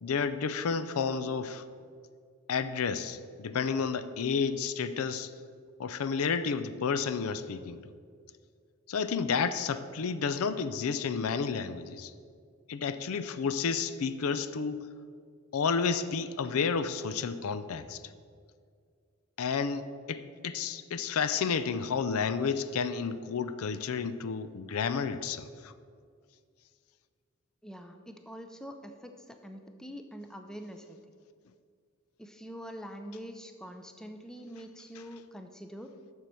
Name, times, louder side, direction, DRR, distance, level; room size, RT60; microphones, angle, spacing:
voice 1, 0.0-1.6 2.5-5.3 5.8-7.8 8.9-12.1 12.7-14.9 15.5-18.0 19.4-25.7, left 5 dB, 80° left, 13 dB, 0.5 m, -31 dB
voice 2, 27.6-31.0 32.2-35.9, equal, 5° left, 5 dB, 0.5 m, -45 dB
7.4 x 6.4 x 6.8 m, 2.1 s
head